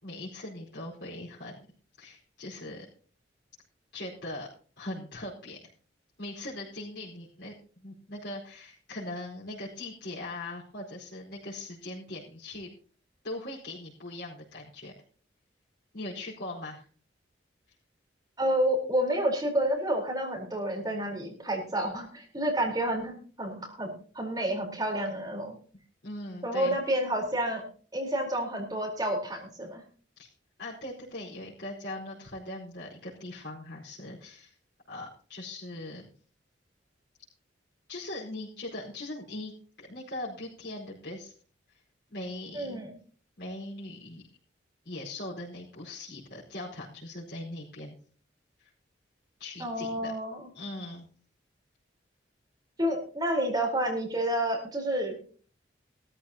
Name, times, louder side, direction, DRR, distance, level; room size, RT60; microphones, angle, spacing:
voice 1, 0.0-1.6 2.0-2.8 3.9-4.5 4.8-5.6 6.2-12.7 13.2-14.9 15.9-16.8 26.0-26.8 30.2-30.3 30.6-34.5 34.9-36.1 37.9-39.5 39.8-41.3 42.1-42.8 43.4-44.2 44.8-47.9 48.6-48.7 49.4-50.1 50.5-51.1, left 1 dB, 65° left, -7 dB, 4.7 m, -40 dB
voice 2, 18.4-25.5 26.4-27.6 27.9-29.8 42.5-42.9 49.6-50.5 52.8-55.2, right 1 dB, 20° right, 0 dB, 4.2 m, -29 dB
18.0 x 14.0 x 2.9 m, 0.42 s
head